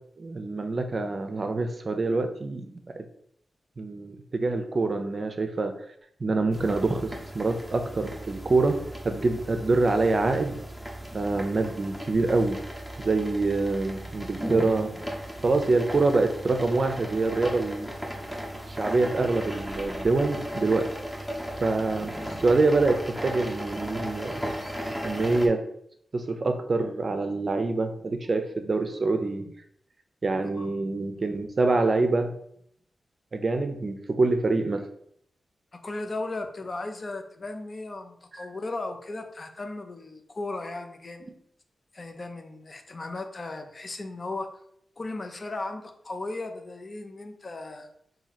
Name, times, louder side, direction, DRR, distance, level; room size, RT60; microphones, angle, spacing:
voice 1, 0.2-3.0 3.8-5.7 6.2-10.6 11.1-12.6 13.0-15.0 15.4-17.9 18.7-20.9 21.6-22.1 22.4-24.4 25.0-25.6 26.1-29.5 30.2-32.3 33.3-34.9 38.4-38.5, right 3 dB, 50° right, 6 dB, 0.5 m, -25 dB
sound 1, 6.5-25.5, equal, 5° left, 0.8 m, -36 dB
voice 2, 30.4-30.7 35.7-41.3 41.9-44.5 45.0-47.9, left 2 dB, 45° left, 6 dB, 0.5 m, -36 dB
2.8 x 2.7 x 4.0 m, 0.69 s
cardioid pair, 60°, 0 cm